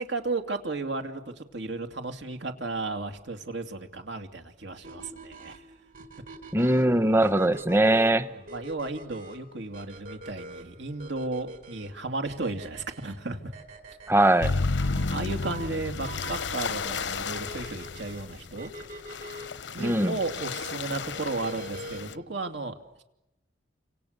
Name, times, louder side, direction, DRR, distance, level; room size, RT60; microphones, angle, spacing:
voice 1, 0.0-5.6 8.3-13.5 14.8-18.7 19.7-23.0, right 3 dB, 80° right, 6 dB, 2.8 m, -34 dB
sound 1, 4.8-22.2, right 1 dB, 50° right, 3.7 m, -45 dB
voice 2, 6.5-8.3 14.1-14.5 19.8-20.1, right 1 dB, 15° right, 12 dB, 0.9 m, -21 dB
sound 2, 14.4-22.1, left 4 dB, 85° left, 0.9 m, -32 dB
29.5 x 27.0 x 6.8 m, 0.92 s
head